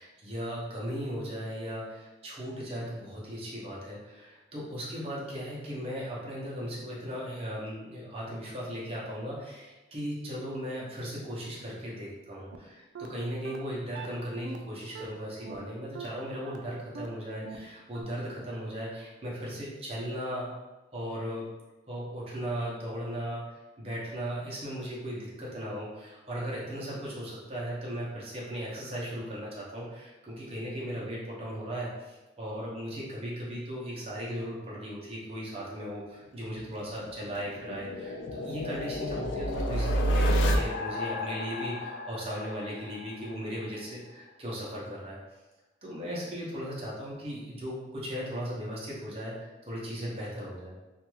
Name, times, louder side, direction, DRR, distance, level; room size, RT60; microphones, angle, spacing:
voice 1, 0.0-20.5 20.9-21.5 21.9-45.2 45.8-50.8, equal, 35° right, -6 dB, 0.7 m, -37 dB
sound 1, 12.5-12.6 12.9-13.1 13.4-13.6 13.9-14.1 14.4-14.6 14.9-15.1 15.4-15.6 15.9-16.1 16.4-16.6 16.9-17.1 17.4-17.6 17.9-18.0, right 5 dB, 90° right, 0.3 m, -40 dB
sound 2, 36.6-43.4, equal, 85° left, 0.4 m, -30 dB
2.5 x 2.2 x 3.0 m, 1.1 s
head